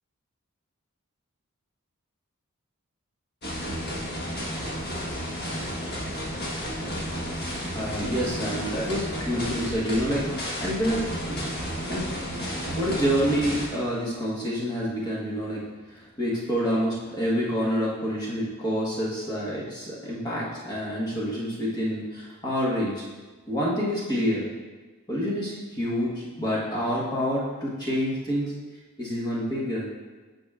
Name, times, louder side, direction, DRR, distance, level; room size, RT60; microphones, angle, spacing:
sound 1, 3.4-13.7, equal, 45° left, 1.3 m, -32 dB
voice 1, 7.7-11.5 11.9-15.6 15.9-23.0 23.5-24.5 25.1-28.5 29.0-29.9, equal, 20° left, -6 dB, 1.3 m, -28 dB
8.7 x 6.1 x 2.5 m, 1.2 s
head